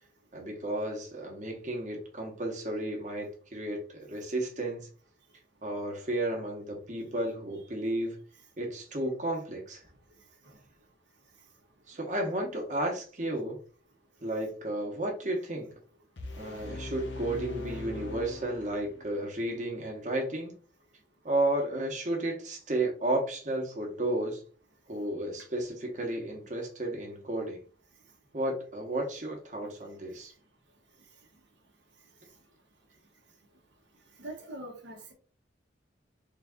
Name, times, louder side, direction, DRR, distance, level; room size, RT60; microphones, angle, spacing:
voice 1, 0.3-4.9 5.6-8.2 8.6-9.8 11.9-13.6 14.2-15.7 16.4-20.5 21.2-24.4 24.9-27.6 28.3-30.3, right 1 dB, 40° right, 1 dB, 1.2 m, -33 dB
sound 1, 16.2-19.2, left 2 dB, 80° left, 0.7 m, -40 dB
voice 2, 34.2-35.1, right 1 dB, 80° right, 2 dB, 1.1 m, -43 dB
3.9 x 2.6 x 3.6 m, 0.39 s
head